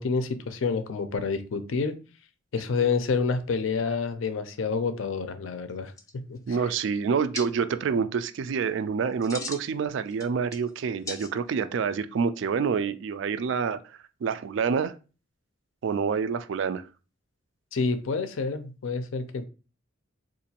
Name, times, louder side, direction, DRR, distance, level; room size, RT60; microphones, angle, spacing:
voice 1, 0.0-2.0 2.5-5.9 6.3-6.4 17.7-19.4, left 4 dB, 75° left, 0.5 m, -28 dB
sound 1, 5.7-5.8 6.0-6.5 7.3-7.5 9.0-9.7 10.1-10.7 11.1-11.6, left 3 dB, 15° left, 0.4 m, -38 dB
voice 2, 6.5-14.9 15.8-16.8, right 6 dB, 65° right, 0.3 m, -27 dB
3.8 x 2.5 x 2.8 m
head